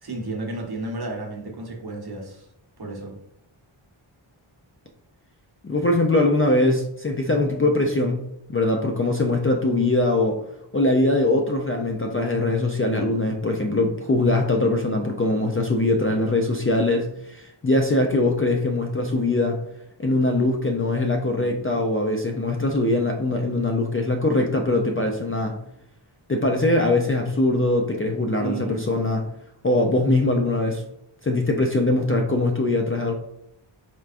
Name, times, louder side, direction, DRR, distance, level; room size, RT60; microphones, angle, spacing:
voice 1, 0.0-2.5 2.8-3.1 28.4-28.8, right 2 dB, 50° right, -1 dB, 1.0 m, -32 dB
voice 2, 5.6-8.2 8.5-10.4 10.7-19.6 20.0-25.6 26.3-29.2 29.6-30.8 31.2-33.1, left 2 dB, 30° left, 1 dB, 0.4 m, -22 dB
4.3 x 3.4 x 2.4 m, 0.77 s
wide cardioid pair, 95°, 50 cm